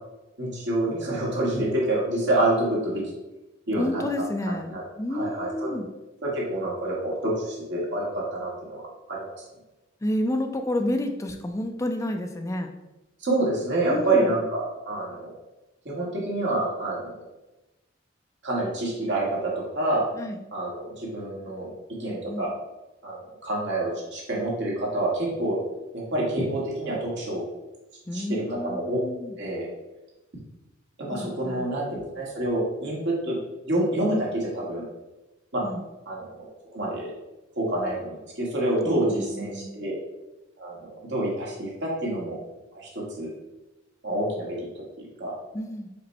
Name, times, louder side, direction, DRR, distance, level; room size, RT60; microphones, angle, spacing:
voice 1, 0.4-3.0 3.7-4.0 4.5-4.8 5.1-5.7 6.2-8.8 9.1-9.4 13.2-15.3 15.8-17.2 18.4-20.0 20.5-21.7 22.0-22.5 23.0-25.6 25.9-27.4 28.1-29.0 29.4-29.7 31.1-33.4 33.7-34.8 35.5-35.6 36.1-36.5 36.7-37.1 37.6-39.9 40.6-42.4 42.7-43.3 44.0-44.7 45.0-45.3, right 1 dB, 60° right, -4 dB, 1.4 m, -27 dB
voice 2, 3.8-5.9 10.0-12.7 13.8-14.3 20.1-20.4 22.0-22.4 28.1-29.4 31.1-31.6 35.6-35.8 38.9-39.7 45.5-45.9, left 1 dB, 15° left, 5 dB, 0.3 m, -30 dB
5.2 x 2.2 x 4.0 m, 1.0 s
head